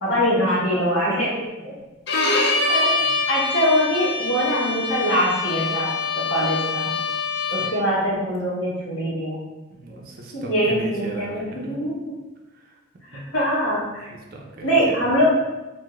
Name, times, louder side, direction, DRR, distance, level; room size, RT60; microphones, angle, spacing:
voice 1, 0.0-1.7 2.7-6.9 7.5-9.4 9.9-10.0 10.3-12.1 13.1-14.1 14.6-15.3, equal, 85° left, -8 dB, 1.1 m, -23 dB
Bowed string instrument, 2.1-7.9, left 3 dB, 55° left, 0.4 m, -24 dB
voice 2, 2.3-3.1 7.6-7.7 9.7-11.8 12.5-12.8 13.1-13.3 14.3-15.1, right 1 dB, 45° right, 0 dB, 0.5 m, -38 dB
2.6 x 2.4 x 3.0 m, 1.1 s
head